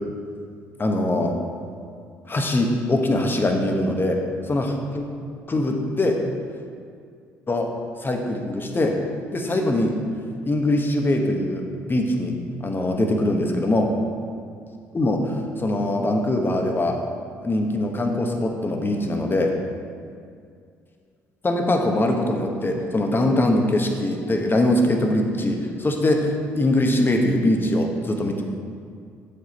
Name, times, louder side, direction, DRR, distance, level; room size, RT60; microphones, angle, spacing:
voice 1, 0.8-1.3 2.3-4.2 4.5-5.1 5.5-6.2 7.5-7.7 8.0-8.9 9.3-9.9 10.4-12.3 12.6-13.9 14.9-15.3 15.6-16.9 17.4-19.5 21.4-28.3, left 1 dB, 30° left, 2 dB, 1.2 m, -22 dB
7.5 x 5.4 x 4.2 m, 2.3 s
hypercardioid pair, 55°, 7 cm